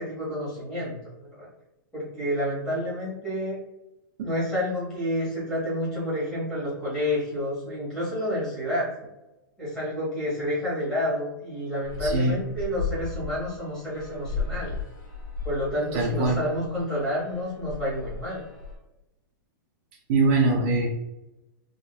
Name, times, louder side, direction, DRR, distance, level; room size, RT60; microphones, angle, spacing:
voice 1, 0.0-1.5 1.9-3.6 4.2-8.9 9.6-14.7 15.4-18.4, equal, 5° left, -9 dB, 1.4 m, -29 dB
sound 1, 11.8-18.7, left 4 dB, 65° left, 1.5 m, -36 dB
voice 2, 12.0-12.4 15.9-16.4 20.1-20.9, right 3 dB, 35° right, -3 dB, 0.5 m, -22 dB
3.7 x 2.6 x 2.2 m, 0.95 s
supercardioid pair, 175°, 11 cm